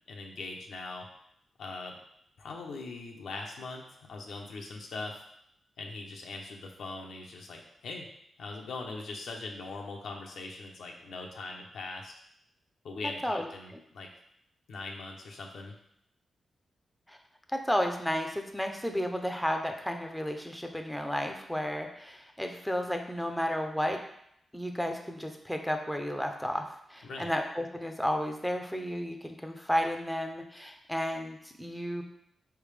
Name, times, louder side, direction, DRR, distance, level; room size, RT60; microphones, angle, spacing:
voice 1, 0.1-1.1 1.6-2.0 2.4-5.2 5.8-8.1 8.4-12.1 12.8-14.1 14.7-15.7 27.0-27.3, left 3 dB, 85° left, 0 dB, 0.7 m, -41 dB
voice 2, 17.5-24.0 24.5-32.0, equal, 5° left, 4 dB, 0.6 m, -32 dB
4.5 x 3.5 x 3.3 m, 0.74 s
cardioid pair, 70°, 0 cm